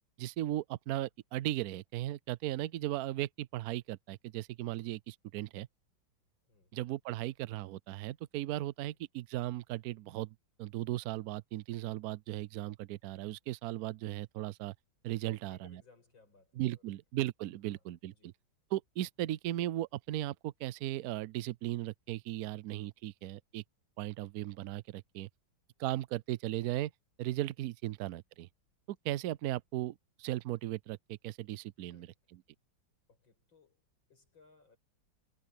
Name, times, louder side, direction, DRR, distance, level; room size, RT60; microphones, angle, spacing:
voice 1, 0.2-5.7 6.7-14.7 15.0-15.8 16.6-18.1 18.7-23.6 24.0-25.3 25.8-26.9 27.2-28.5 28.9-32.4, right 15 dB, 75° right, 0.8 m, -37 dB
voice 2, 15.3-17.0 17.7-17.8 18.1-18.4 27.8-28.0 31.8-32.1 33.1-34.8, left 4 dB, 75° left, 6.8 m, -64 dB
omnidirectional pair, 2.1 m